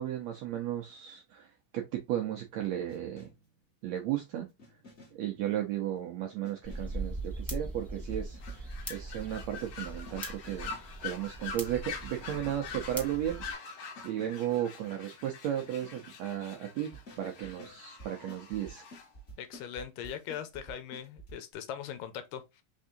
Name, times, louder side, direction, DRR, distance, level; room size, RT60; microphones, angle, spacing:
voice 1, 0.0-1.5 1.7-3.3 3.8-4.5 5.1-10.7 11.0-13.7 14.0-18.8, right 11 dB, 80° right, 1.6 m, -35 dB
sound 1, 2.9-3.5 4.6-5.3 6.4-7.0 8.1-8.8 9.4-11.0 12.1-12.8 13.9-14.5 15.6-16.2 16.9-21.4, right 1 dB, 35° left, 1.1 m, -52 dB
sound 2, 6.6-13.5, right 2 dB, ahead, 0.3 m, -41 dB
sound 3, 8.4-19.1, left 5 dB, 60° left, 2.0 m, -45 dB
voice 2, 19.4-22.6, left 9 dB, 80° left, 2.4 m, -40 dB
5.3 x 3.6 x 2.6 m
omnidirectional pair, 3.9 m